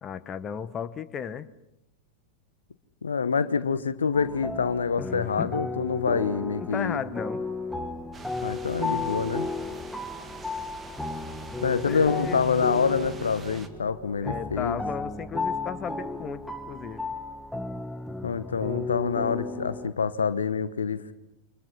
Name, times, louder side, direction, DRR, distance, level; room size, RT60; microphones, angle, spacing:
voice 1, 0.0-1.5 5.0-5.6 6.5-7.4 11.9-12.4 14.2-17.1, left 7 dB, 25° left, 12 dB, 1.2 m, -35 dB
voice 2, 3.0-7.0 8.4-9.5 11.6-14.8 18.2-21.1, left 5 dB, 70° left, 14 dB, 1.1 m, -26 dB
sound 1, 4.1-19.9, left 2 dB, ahead, 1.4 m, -34 dB
sound 2, 8.1-13.7, right 3 dB, 15° right, 2.1 m, -45 dB
29.5 x 25.5 x 5.8 m, 0.85 s
figure-of-eight pair, 90°, 0 cm